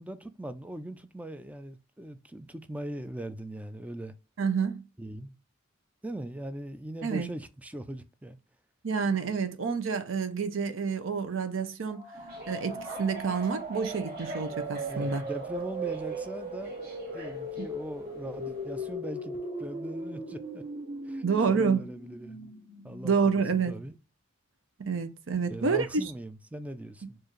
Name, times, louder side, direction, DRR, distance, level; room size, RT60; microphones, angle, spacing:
voice 1, 0.0-4.1 5.0-5.3 6.0-8.4 14.9-16.8 17.1-20.6 21.0-22.5 22.8-23.3 23.7-24.0 25.5-27.2, right 1 dB, 5° right, 0.3 m, -40 dB
voice 2, 4.4-4.8 7.0-7.3 8.8-12.1 12.5-15.2 21.2-21.8 23.0-23.7 24.8-26.0, right 5 dB, 70° right, 0.6 m, -28 dB
sound 1, 11.9-23.6, right 1 dB, 30° right, 0.9 m, -38 dB
sound 2, 12.1-18.9, right 1 dB, 50° right, 1.1 m, -48 dB
4.5 x 2.5 x 3.0 m
head